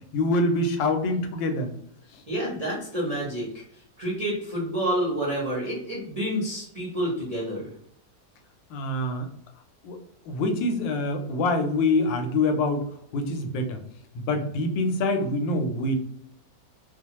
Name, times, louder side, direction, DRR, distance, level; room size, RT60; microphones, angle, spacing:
voice 1, 0.1-1.7 2.1-2.2 8.7-9.3 9.8-10.0 10.3-12.8 13.1-13.8 14.1-16.0, left 2 dB, 90° left, 6 dB, 1.3 m, -25 dB
voice 2, 2.3-3.6 4.0-7.7, equal, 65° right, -5 dB, 0.3 m, -29 dB
3.1 x 2.0 x 2.8 m, 0.68 s
omnidirectional pair, 1.9 m